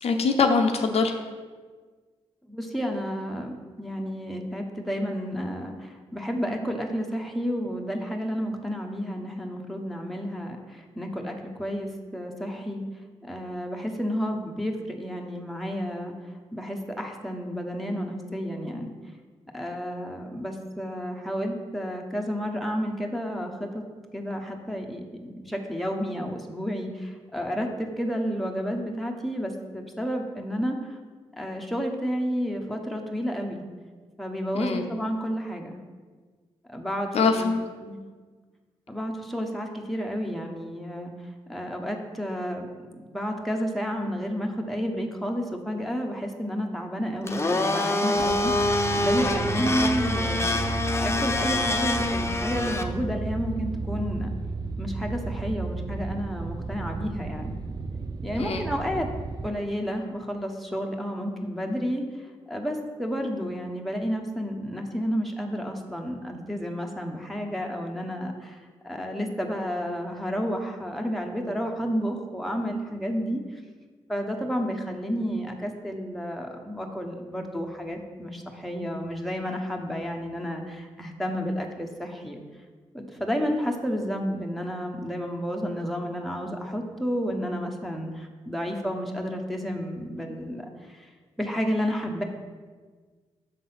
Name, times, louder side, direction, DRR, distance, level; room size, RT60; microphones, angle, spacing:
voice 1, 0.0-1.1 34.5-34.9 37.1-37.6 58.4-58.6, left 4 dB, 60° left, 5 dB, 0.6 m, -23 dB
voice 2, 2.5-12.8 13.2-16.1 16.5-18.9 19.5-23.8 24.1-31.0 31.4-33.6 34.2-35.8 36.7-37.5 37.8-38.0 38.9-41.1 41.5-42.7 42.9-50.6 50.9-54.3 54.8-57.6 58.2-59.1 59.4-68.6 68.8-73.6 74.1-82.4 82.9-91.1 91.4-92.2, equal, ahead, 1 dB, 1.1 m, -31 dB
Domestic sounds home sounds, 47.2-52.8, left 2 dB, 25° left, 0.7 m, -26 dB
sound 1, 48.2-59.5, right 3 dB, 35° right, 0.5 m, -33 dB
6.5 x 3.8 x 5.8 m, 1.5 s
supercardioid pair, 45°, 12 cm